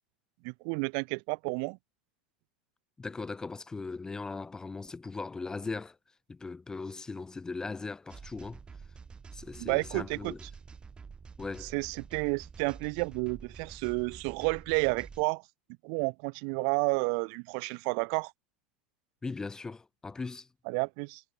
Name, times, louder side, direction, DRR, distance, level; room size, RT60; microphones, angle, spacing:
voice 1, 0.4-1.8 9.6-10.3 11.7-15.4 15.8-18.3 20.7-21.2, right 40 dB or more, 55° right, 1.6 m, -31 dB
voice 2, 3.0-6.0 6.3-8.6 9.3-10.4 11.4-11.7 19.2-20.5, left 4 dB, 15° left, 0.7 m, -39 dB
sound 1, 8.1-15.2, right 5 dB, 20° right, 1.3 m, -48 dB
figure-of-eight pair, 85°, 5 cm